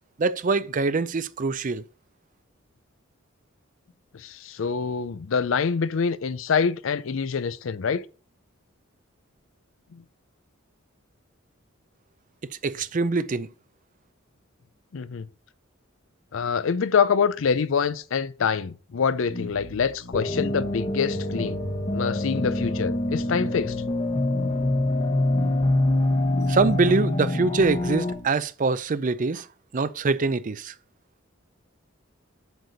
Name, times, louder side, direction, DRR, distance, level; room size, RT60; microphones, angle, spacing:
voice 1, 0.2-1.8 12.6-13.5 26.5-29.5 29.7-30.7, right 4 dB, 40° right, 0.4 m, -24 dB
voice 2, 4.1-8.0 9.9-10.0 14.9-15.3 16.3-21.6 21.9-23.8, left 6 dB, 70° left, 0.5 m, -25 dB
sound 1, 19.3-28.3, left 1 dB, 50° left, 1.8 m, -39 dB
sound 2, 20.1-28.1, left 1 dB, 30° left, 0.9 m, -25 dB
8.0 x 6.7 x 4.0 m
head